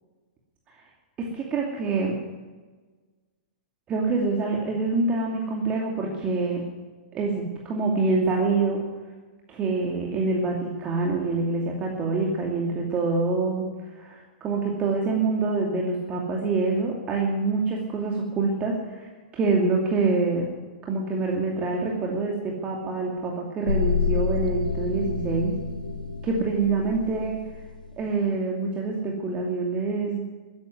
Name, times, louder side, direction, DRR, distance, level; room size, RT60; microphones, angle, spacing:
voice 1, 1.2-2.2 3.9-6.7 7.1-8.9 9.5-20.5 20.8-25.6 26.2-27.5 28.0-30.3, right 3 dB, 25° right, 0 dB, 2.6 m, -26 dB
sound 1, 23.6-27.9, left 5 dB, 90° left, 1.3 m, -29 dB
14.0 x 10.5 x 9.5 m, 1.4 s
hypercardioid pair, 115°, 4 cm